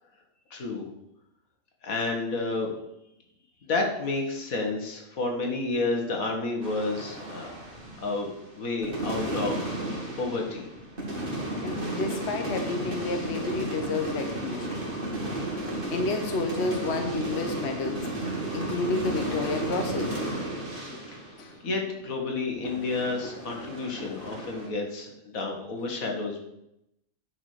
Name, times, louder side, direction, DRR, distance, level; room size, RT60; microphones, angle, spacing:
voice 1, 0.5-0.9 1.8-2.7 3.6-7.5 8.0-10.7 21.1-21.2 21.6-26.4, left 3 dB, 85° left, 2 dB, 2.0 m, -30 dB
sound 1, 6.6-8.5 8.8-22.3 22.6-24.7, right 1 dB, 40° right, 2.3 m, -33 dB
voice 2, 11.6-14.9 15.6-20.2 21.4-21.5, left 3 dB, 55° left, 5 dB, 1.2 m, -31 dB
9.8 x 4.9 x 6.5 m, 0.83 s
omnidirectional pair, 1.4 m